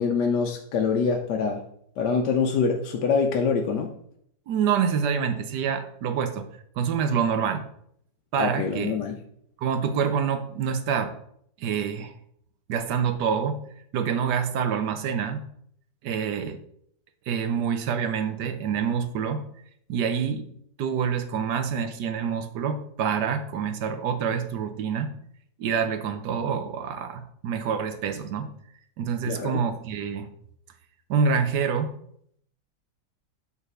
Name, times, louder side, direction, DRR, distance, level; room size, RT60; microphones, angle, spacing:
voice 1, 0.0-1.6 2.0-3.9 8.4-9.1 29.2-29.6, left 5 dB, 75° left, 2 dB, 1.3 m, -25 dB
voice 2, 4.5-6.5 6.8-7.7 8.3-9.0 9.6-11.1 11.6-12.1 12.7-13.6 13.9-15.5 16.0-16.6 17.3-19.5 19.9-20.5 20.8-25.1 25.6-28.5 29.0-30.3 31.1-31.9, right 7 dB, 75° right, 8 dB, 1.3 m, -26 dB
5.6 x 4.1 x 6.0 m, 0.68 s
omnidirectional pair, 1.9 m